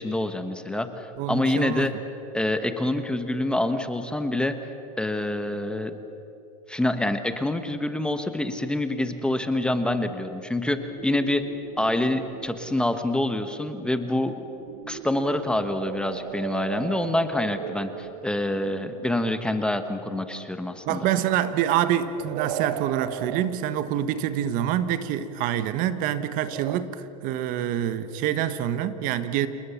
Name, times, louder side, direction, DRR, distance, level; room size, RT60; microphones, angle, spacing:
voice 1, 0.0-1.9 2.3-4.6 5.0-5.9 6.7-11.4 11.8-14.4 14.9-21.1, left 1 dB, 5° left, 8 dB, 1.1 m, -26 dB
voice 2, 1.2-1.9 20.9-29.5, right 10 dB, 50° right, 12 dB, 1.2 m, -26 dB
sound 1, 10.6-12.8 14.5-18.7 22.0-23.6 26.3-26.8, right 12 dB, 75° right, 0.9 m, -37 dB
28.5 x 19.5 x 7.1 m, 3.0 s
supercardioid pair, 135°, 18 cm